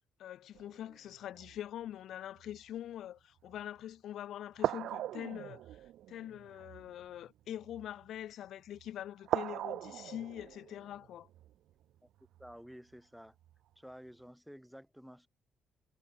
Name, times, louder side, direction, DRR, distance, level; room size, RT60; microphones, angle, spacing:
voice 1, 0.2-5.6 6.1-11.3, left 11 dB, 75° left, 0.5 m, -44 dB
sound 1, 0.5-1.8 2.4-2.6 3.5-3.6 4.6-8.2 8.7-8.9 9.2-12.7 13.4-13.6, right 13 dB, 80° right, 0.4 m, -40 dB
voice 2, 12.4-13.4 13.7-15.3, equal, ahead, 3.2 m, -52 dB
cardioid pair, 90°, 0 cm